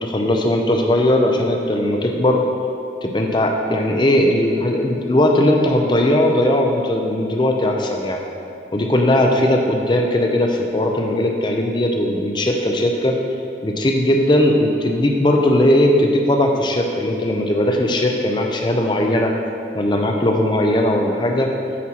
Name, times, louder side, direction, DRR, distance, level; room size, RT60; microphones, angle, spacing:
voice 1, 0.0-2.4 3.0-8.2 8.7-13.2 13.6-19.3 19.7-21.5, left 1 dB, 25° left, 2 dB, 0.6 m, -18 dB
8.3 x 4.5 x 5.7 m, 2.6 s
head